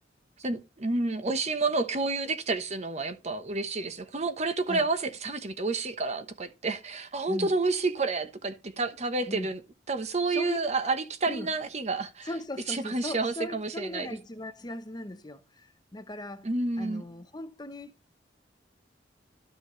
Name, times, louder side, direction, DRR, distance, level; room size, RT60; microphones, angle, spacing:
voice 1, 0.4-9.6 9.9-12.3 12.7-14.1 16.4-17.0, right 3 dB, 40° right, 1.0 m, -30 dB
voice 2, 10.3-10.6 10.8-10.9 11.3-11.5 12.2-16.5 16.8-18.0, left 1 dB, 25° left, 0.9 m, -38 dB
12.5 x 6.1 x 3.2 m
head